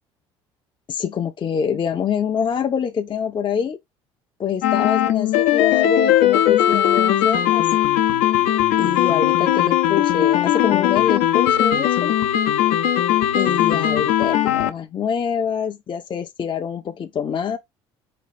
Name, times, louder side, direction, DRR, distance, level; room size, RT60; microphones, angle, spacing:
voice 1, 0.9-3.8 4.4-7.7 8.8-12.1 13.4-17.6, left 7 dB, 35° left, 0.6 m, -25 dB
sound 1, 4.6-14.7, left 12 dB, 70° left, 0.7 m, -18 dB
4.3 x 2.4 x 4.1 m
hypercardioid pair, 60°, 15 cm